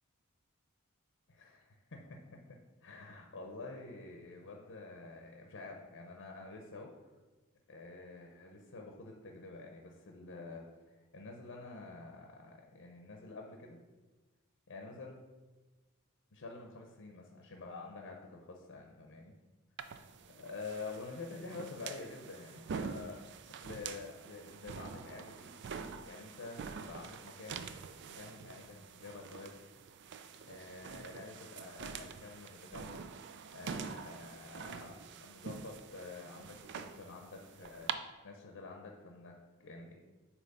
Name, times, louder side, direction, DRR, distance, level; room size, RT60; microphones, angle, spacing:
voice 1, 1.3-2.2 2.5-7.1 7.7-13.8 14.7-15.2 16.3-19.3 20.2-25.5 26.0-27.6 28.0-29.5 30.5-33.0 33.5-40.0, left 3 dB, 60° left, 1 dB, 0.7 m, -48 dB
sound 1, 19.8-37.9, right 6 dB, 55° right, 0.4 m, -46 dB
8.0 x 3.0 x 5.4 m, 1.3 s
head